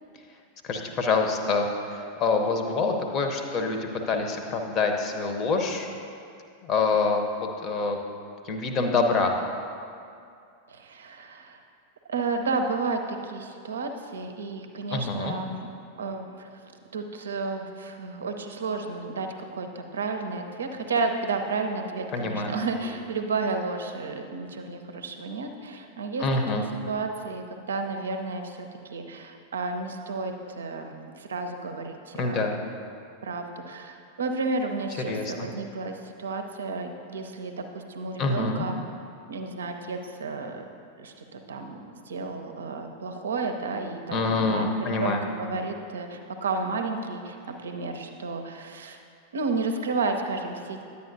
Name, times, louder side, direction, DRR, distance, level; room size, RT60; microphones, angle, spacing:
voice 1, 0.6-5.9 6.6-8.0 8.4-9.3 14.9-15.4 22.1-22.6 26.2-26.6 32.2-32.5 35.1-35.5 38.2-38.7 44.1-45.2, left 3 dB, 30° left, 4 dB, 0.8 m, -26 dB
voice 2, 10.7-11.6 12.1-15.7 16.0-16.6 16.9-26.3 26.5-32.4 33.2-38.8 39.3-40.7 41.0-49.0 49.3-50.8, right 3 dB, 65° right, 5 dB, 0.6 m, -32 dB
10.5 x 8.2 x 2.6 m, 2.4 s
figure-of-eight pair, 90°, 0 cm